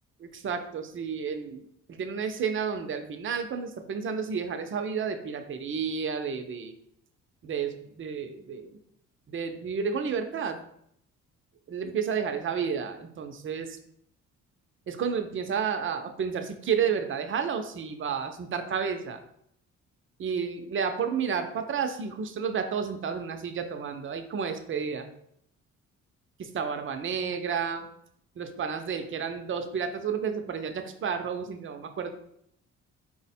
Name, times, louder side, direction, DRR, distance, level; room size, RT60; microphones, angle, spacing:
voice 1, 0.2-6.8 7.4-8.8 9.3-10.6 11.7-13.8 14.9-19.2 20.2-25.1 26.4-27.9 28.4-32.1, right 6 dB, 40° right, 7 dB, 0.6 m, -31 dB
4.4 x 2.1 x 4.2 m, 0.71 s
cardioid pair, 90°, 30 cm